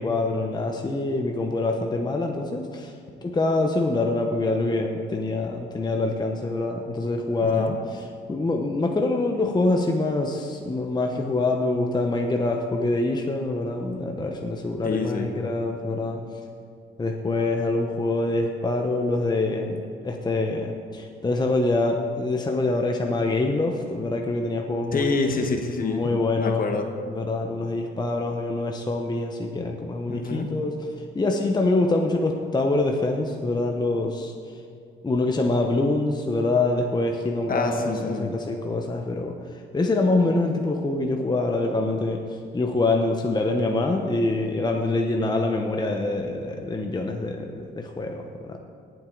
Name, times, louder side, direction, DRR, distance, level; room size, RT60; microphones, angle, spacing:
voice 1, 0.0-2.9 3.2-16.2 17.0-25.2 25.8-26.7 27.0-30.9 31.1-34.3 35.0-48.6, left 2 dB, 20° left, 2 dB, 1.0 m, -25 dB
voice 2, 7.4-7.8 14.8-15.3 24.9-26.9 30.1-30.5 37.5-38.3, left 4 dB, 45° left, 4 dB, 1.4 m, -27 dB
18.5 x 7.9 x 4.0 m, 2.4 s
cardioid pair, 90°, 20 cm